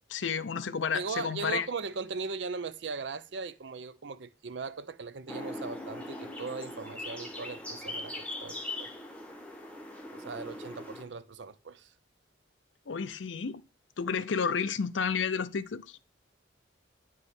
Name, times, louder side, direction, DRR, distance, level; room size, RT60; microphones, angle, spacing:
voice 1, 0.1-1.7 12.9-13.6 14.0-16.0, left 6 dB, 80° left, 0.6 m, -31 dB
voice 2, 0.9-8.9 10.1-11.9, right 4 dB, 70° right, 0.6 m, -39 dB
sound 1, 5.3-11.0, left 1 dB, 5° left, 1.2 m, -40 dB
9.6 x 5.0 x 4.3 m
head